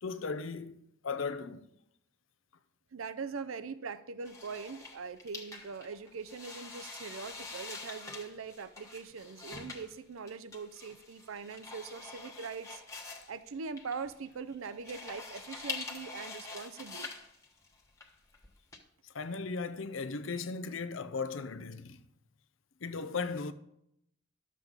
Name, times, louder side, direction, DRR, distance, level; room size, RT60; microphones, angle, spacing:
voice 1, 0.0-1.7 19.0-22.0 22.8-23.5, left 4 dB, 70° left, 0.6 m, -37 dB
voice 2, 2.9-12.8 13.3-17.1, right 5 dB, 80° right, 0.5 m, -42 dB
sound 1, 4.2-18.8, left 4 dB, 15° left, 1.2 m, -45 dB
12.0 x 7.5 x 3.9 m
head